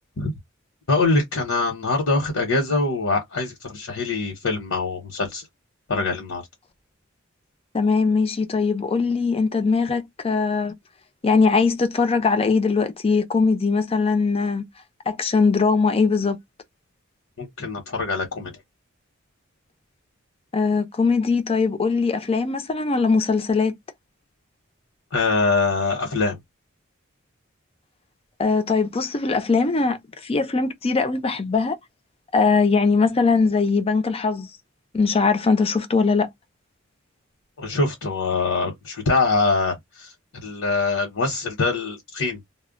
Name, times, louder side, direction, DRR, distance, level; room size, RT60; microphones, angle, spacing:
voice 1, 0.9-5.4 5.9-6.4 17.4-18.5 25.1-26.4 37.6-40.1 40.4-42.4, left 3 dB, 75° left, 0.9 m, -23 dB
voice 2, 7.7-10.7 11.2-14.6 15.1-16.4 20.5-23.8 28.4-31.8 32.3-34.5 34.9-36.3, left 4 dB, 30° left, 0.4 m, -21 dB
2.1 x 2.1 x 3.6 m
head